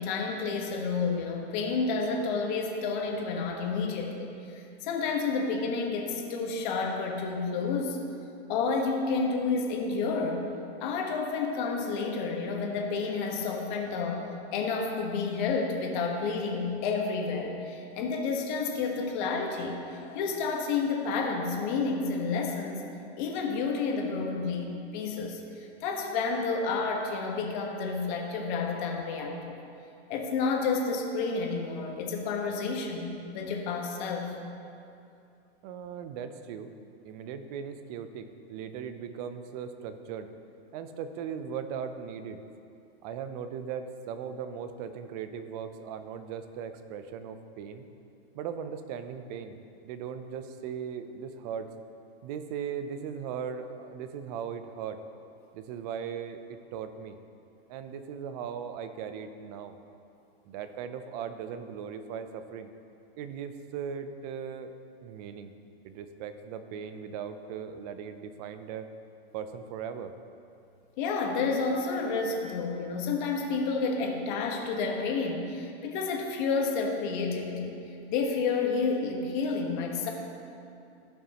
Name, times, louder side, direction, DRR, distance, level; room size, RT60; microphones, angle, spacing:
voice 1, 0.0-8.0 8.5-10.5 10.8-14.2 14.5-22.8 23.2-29.4 30.1-34.3 71.0-77.8 78.1-80.1, left 4 dB, 45° left, 1 dB, 1.4 m, -30 dB
voice 2, 35.6-36.7 37.0-40.3 40.7-42.4 43.0-47.8 48.3-49.6 49.8-51.7 52.2-55.0 55.5-57.2 57.7-59.7 60.5-62.7 63.2-64.7 65.0-65.5 65.8-68.9 69.3-70.1, right 7 dB, 40° right, 9 dB, 0.6 m, -38 dB
15.5 x 5.6 x 3.0 m, 2.6 s
hypercardioid pair, 140°, 32 cm